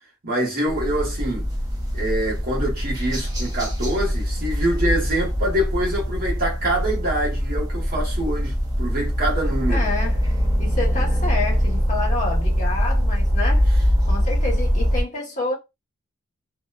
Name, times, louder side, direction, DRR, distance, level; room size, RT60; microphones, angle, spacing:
voice 1, 0.2-1.5 1.9-9.9, right 1 dB, 45° right, 1.0 m, -25 dB
sound 1, 0.7-15.0, equal, 15° right, 0.6 m, -23 dB
voice 2, 9.7-10.3 10.6-13.7 14.1-15.5, left 3 dB, 35° left, 1.0 m, -28 dB
2.8 x 2.0 x 2.3 m
head